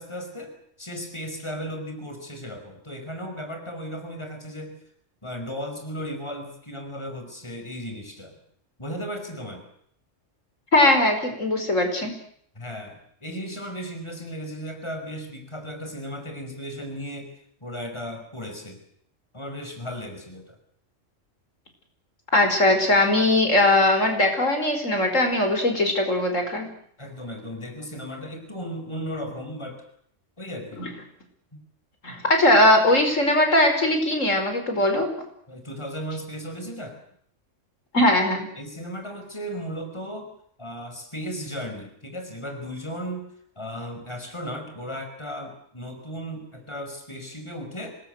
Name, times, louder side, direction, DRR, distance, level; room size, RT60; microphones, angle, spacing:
voice 1, 0.0-4.8 5.2-8.4 8.8-9.7 12.6-17.3 17.6-18.8 19.3-20.6 27.0-29.8 30.4-30.9 31.5-31.6 35.5-37.0 38.6-40.3 40.6-43.3 43.6-47.9, equal, 20° left, 6 dB, 5.2 m, -35 dB
voice 2, 10.7-12.1 22.3-26.7 30.8-30.9 32.0-35.1 37.9-38.5, left 1 dB, 90° left, 5 dB, 5.4 m, -20 dB
26.5 x 20.0 x 8.0 m, 0.66 s
omnidirectional pair, 1.3 m